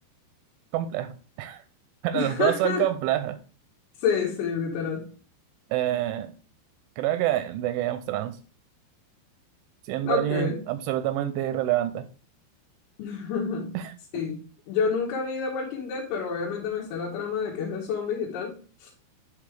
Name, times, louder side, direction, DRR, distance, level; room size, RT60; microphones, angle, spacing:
voice 1, 0.7-1.6 2.0-3.4 5.7-6.3 7.0-8.4 9.9-12.1 13.7-13.9, right 13 dB, 85° right, 10 dB, 2.8 m, -27 dB
voice 2, 2.1-2.9 4.0-5.1 10.0-10.6 13.0-13.7 14.1-14.4 14.7-18.9, left 6 dB, 90° left, -4 dB, 4.3 m, -29 dB
10.5 x 3.7 x 3.4 m, 0.37 s
omnidirectional pair, 5.7 m